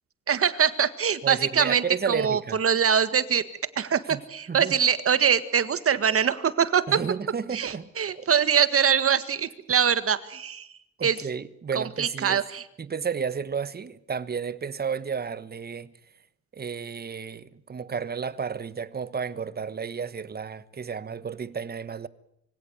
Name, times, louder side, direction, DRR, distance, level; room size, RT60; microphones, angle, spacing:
voice 1, 0.3-3.4 3.8-7.0 7.5-10.7 11.0-11.2 11.7-12.6, right 7 dB, 50° right, 1.8 m, -23 dB
voice 2, 1.2-2.6 4.1-4.2 4.5-4.7 6.9-8.3 11.0-12.4 12.8-15.9 16.5-22.1, right 6 dB, 30° right, 1.2 m, -32 dB
24.5 x 17.0 x 9.4 m
cardioid pair, 90°, 30 cm